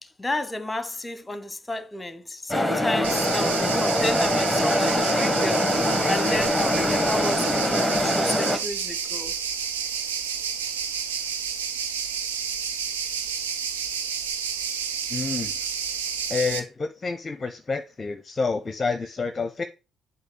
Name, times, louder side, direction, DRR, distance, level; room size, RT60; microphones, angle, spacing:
voice 1, 0.0-5.8 6.1-9.4, left 2 dB, 15° left, 1.1 m, -32 dB
sound 1, 2.5-8.6, left 1 dB, ahead, 1.5 m, -23 dB
sound 2, 3.0-16.6, right 7 dB, 90° right, 0.5 m, -30 dB
voice 2, 15.1-15.5 16.3-19.6, left 4 dB, 35° left, 0.7 m, -28 dB
8.0 x 2.8 x 5.5 m
hypercardioid pair, 50°, 0 cm